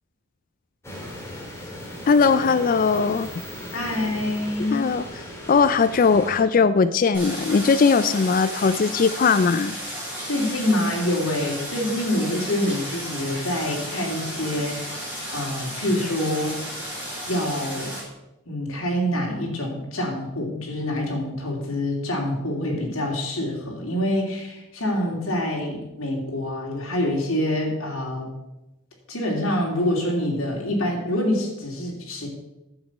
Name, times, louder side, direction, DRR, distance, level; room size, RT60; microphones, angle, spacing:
sound 1, 0.8-6.4, left 1 dB, 15° left, 2.0 m, -37 dB
voice 1, 2.1-3.3 4.7-5.0 5.5-9.8, left 5 dB, 40° left, 13 dB, 0.3 m, -19 dB
voice 2, 3.7-4.9 10.2-16.6 17.2-17.9 18.5-28.3 29.1-32.3, left 1 dB, 70° left, -1 dB, 3.0 m, -26 dB
Stream, 7.1-18.0, equal, 10° right, 4.6 m, -33 dB
10.5 x 7.4 x 6.0 m, 0.94 s
head